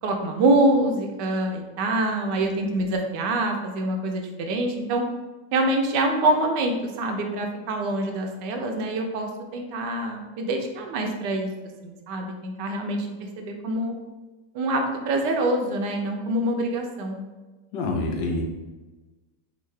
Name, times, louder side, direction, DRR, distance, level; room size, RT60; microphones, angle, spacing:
voice 1, 0.0-5.0 5.5-11.5 11.8-13.9 14.5-17.2, right 1 dB, 80° right, 3 dB, 1.2 m, -25 dB
voice 2, 17.7-18.4, left 2 dB, 90° left, 1 dB, 1.3 m, -26 dB
3.6 x 2.5 x 3.1 m, 1.2 s
omnidirectional pair, 1.9 m